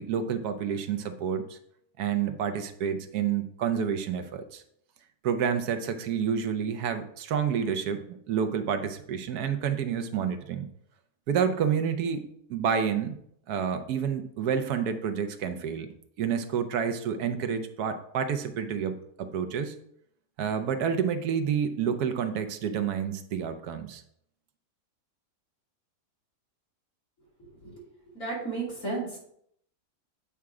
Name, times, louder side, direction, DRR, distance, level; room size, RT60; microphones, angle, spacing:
voice 1, 0.0-1.6 2.0-4.6 5.2-10.7 11.3-13.2 13.5-15.9 16.2-19.8 20.4-24.0, right 7 dB, 70° right, 8 dB, 1.2 m, -29 dB
voice 2, 28.1-29.2, right 3 dB, 50° left, -5 dB, 3.3 m, -33 dB
8.5 x 3.6 x 4.7 m, 0.70 s
omnidirectional pair, 1.8 m